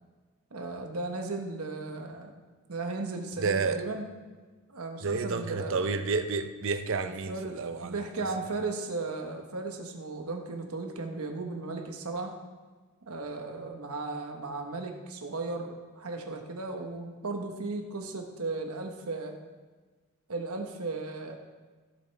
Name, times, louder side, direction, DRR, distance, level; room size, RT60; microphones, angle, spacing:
voice 1, 0.5-2.3 2.7-4.1 4.7-5.8 7.3-12.3 13.1-19.3 20.3-21.4, right 3 dB, 80° right, 1.2 m, -36 dB
voice 2, 3.4-3.8 5.0-8.1, right 4 dB, 60° right, 0.6 m, -30 dB
16.0 x 7.3 x 3.4 m
head